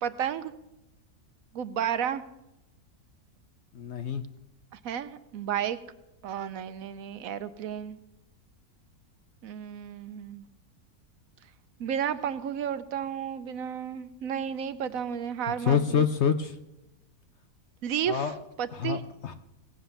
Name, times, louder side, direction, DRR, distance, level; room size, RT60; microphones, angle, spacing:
voice 1, 0.0-0.5 1.5-2.2 4.7-5.8 6.2-8.0 9.4-10.4 11.8-16.0 17.8-19.0, right 8 dB, 70° right, 13 dB, 1.0 m, -32 dB
voice 2, 3.7-4.2 15.6-16.5 18.1-18.3 18.8-19.3, left 7 dB, 55° left, 10 dB, 0.8 m, -26 dB
18.0 x 7.8 x 6.8 m, 0.92 s
omnidirectional pair, 1.6 m